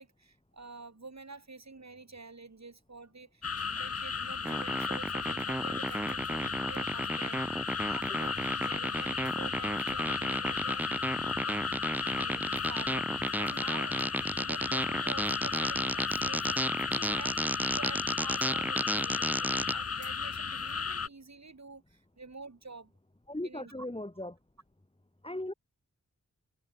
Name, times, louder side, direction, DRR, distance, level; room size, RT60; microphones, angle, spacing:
voice 1, 0.0-11.1 11.5-11.7 12.1-13.1 13.4-22.9 23.4-23.7, right 3 dB, 55° right, 8.0 m, -48 dB
sound 1, 3.4-21.1, left 5 dB, 45° left, 1.0 m, -35 dB
sound 2, 4.5-19.7, right 1 dB, 5° right, 0.4 m, -33 dB
voice 2, 23.3-24.4 25.2-25.5, left 1 dB, 15° left, 2.6 m, -37 dB
cardioid pair, 45°, 33 cm